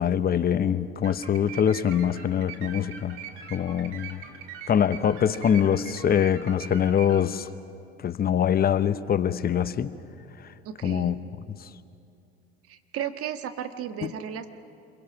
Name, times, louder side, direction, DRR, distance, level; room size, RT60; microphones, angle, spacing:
voice 1, 0.0-3.2 3.5-4.2 4.7-7.5 8.0-9.9 10.4-10.5 10.8-11.1 11.6-11.7 14.0-14.1, left 9 dB, 30° left, 13 dB, 0.9 m, -24 dB
sound 1, 1.0-7.2, right 7 dB, 65° right, 2.8 m, -43 dB
voice 2, 10.6-11.1 12.7-14.5, right 9 dB, 45° right, 8 dB, 1.6 m, -34 dB
28.0 x 22.5 x 6.0 m, 2.6 s
hypercardioid pair, 80°, 31 cm